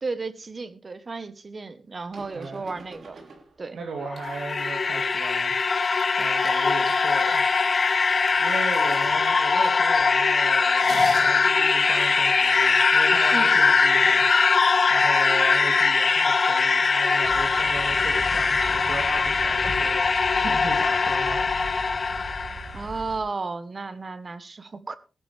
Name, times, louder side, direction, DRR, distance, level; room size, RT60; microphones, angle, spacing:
voice 1, 0.0-3.2 3.6-3.8 13.3-13.5 22.7-25.0, right 3 dB, 30° right, 1.1 m, -33 dB
sound 1, 2.1-3.7 4.2-10.2 10.5-18.4, right 3 dB, 50° right, 3.3 m, -47 dB
voice 2, 2.3-2.8 3.7-7.5 7.8-7.9 8.4-21.8, right 4 dB, 75° right, 3.0 m, -37 dB
sound 2, 4.0-22.7, left 4 dB, 40° left, 0.9 m, -21 dB
sound 3, 17.2-23.2, equal, 10° right, 5.7 m, -38 dB
18.5 x 11.0 x 3.4 m
wide cardioid pair, 180°, 0 cm